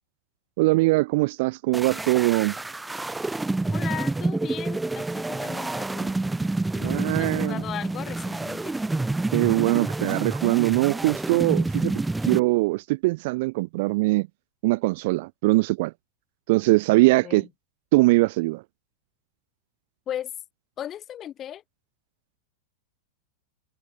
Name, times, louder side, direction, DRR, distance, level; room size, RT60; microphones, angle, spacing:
voice 1, 0.6-2.6 6.8-7.6 9.3-11.9 12.3-14.3 14.6-15.9 16.5-17.4 17.9-18.6, right 22 dB, 50° right, 0.9 m, -22 dB
sound 1, 1.7-12.4, right 2 dB, 5° right, 2.5 m, -28 dB
voice 2, 3.7-6.2 6.7-8.8 17.2-17.5 20.1-20.3 20.8-21.6, left 11 dB, 30° left, 6.8 m, -36 dB
figure-of-eight pair, 90°, 0 cm